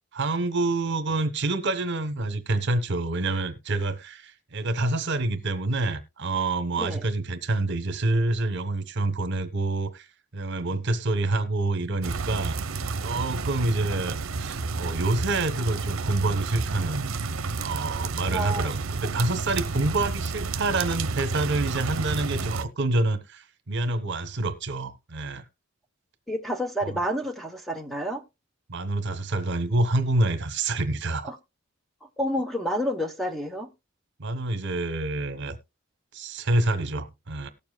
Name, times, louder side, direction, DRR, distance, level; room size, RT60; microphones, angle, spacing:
voice 1, 0.1-10.1 10.3-12.6 13.0-17.1 17.5-25.4 26.8-27.0 28.7-31.3 34.2-35.6 36.1-37.5, right 2 dB, 60° right, 1.0 m, -27 dB
sound 1, 12.0-22.6, right 4 dB, 75° right, 0.6 m, -31 dB
voice 2, 18.3-18.7 26.3-28.2 31.2-31.4 32.2-33.7, equal, ahead, 0.9 m, -29 dB
18.5 x 7.0 x 2.3 m
head